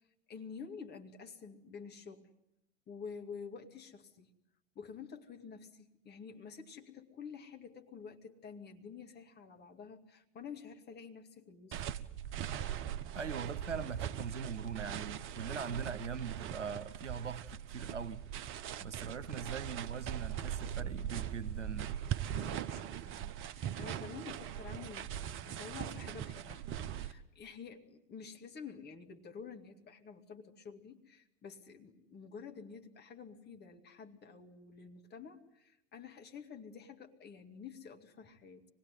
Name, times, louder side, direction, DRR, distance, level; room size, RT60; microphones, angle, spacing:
voice 1, 0.3-2.3 2.9-4.3 4.7-11.8 22.4-26.6 26.9-38.7, left 6 dB, 30° left, 2.4 m, -49 dB
sound 1, 11.7-27.1, right 10 dB, 35° right, 1.0 m, -40 dB
voice 2, 13.1-18.2 18.8-21.9, right 6 dB, 80° right, 1.0 m, -41 dB
25.0 x 20.0 x 9.4 m
figure-of-eight pair, 80°, 36 cm